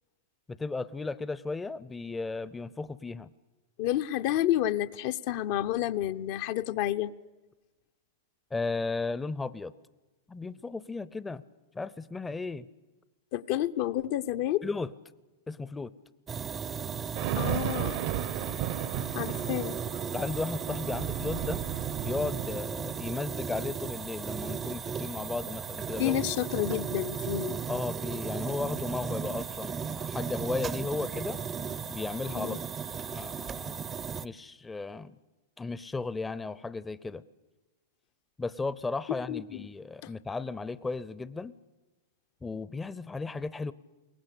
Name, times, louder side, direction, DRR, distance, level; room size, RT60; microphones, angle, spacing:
voice 1, 0.5-3.3 8.5-9.7 10.3-11.4 11.7-12.7 14.6-14.9 15.5-15.9 20.1-21.6 22.0-26.2 27.7-31.4 31.9-32.6 33.1-33.8 34.2-35.2 35.6-37.2 38.4-41.5 42.4-43.7, left 3 dB, 10° left, 16 dB, 0.7 m, -35 dB
voice 2, 3.8-7.1 13.3-14.6 17.4-18.0 19.1-19.8 26.0-27.6 32.3-32.6 39.3-39.7 40.0-40.1, left 12 dB, 55° left, 10 dB, 0.8 m, -30 dB
sound 1, 16.3-34.3, right 7 dB, 25° right, 0.7 m, -36 dB
sound 2, 17.2-22.6, right 12 dB, 55° right, 0.9 m, -34 dB
23.0 x 19.0 x 8.4 m, 1.1 s
hypercardioid pair, 105°, 0 cm